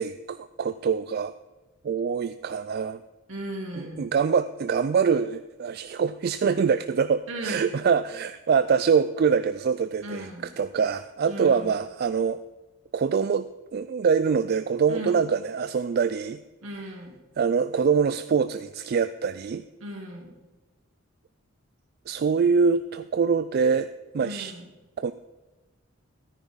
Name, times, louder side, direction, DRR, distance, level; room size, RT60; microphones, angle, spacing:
voice 1, 0.0-1.3 1.8-3.0 3.8-10.3 10.6-12.4 12.9-16.4 17.4-19.6 22.1-23.9 24.1-24.5 25.0-25.1, right 6 dB, 50° right, 12 dB, 0.3 m, -24 dB
voice 2, 3.3-4.1 7.3-7.7 10.0-10.5 11.2-11.8 14.9-15.2 16.6-17.2 19.8-20.3 24.2-24.7, equal, 70° right, -1 dB, 3.2 m, -37 dB
13.5 x 10.0 x 4.0 m, 1.1 s
head